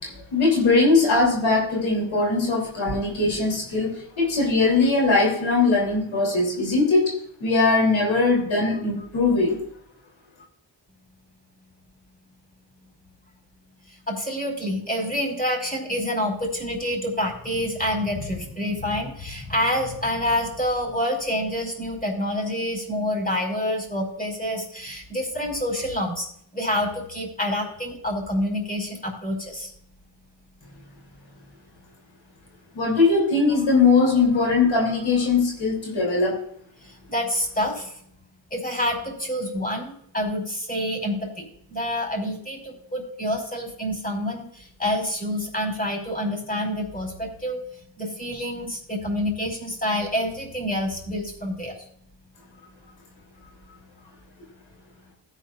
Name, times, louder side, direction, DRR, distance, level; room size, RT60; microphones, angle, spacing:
voice 1, 0.0-9.6 32.7-36.4, left 3 dB, 85° left, -1 dB, 3.4 m, -21 dB
voice 2, 13.9-26.3 26.5-29.7 36.8-38.0 38.5-47.6 48.0-51.7, equal, 20° left, 1 dB, 5.0 m, -27 dB
16.5 x 9.2 x 2.5 m, 0.68 s
cardioid pair, 60°, 45 cm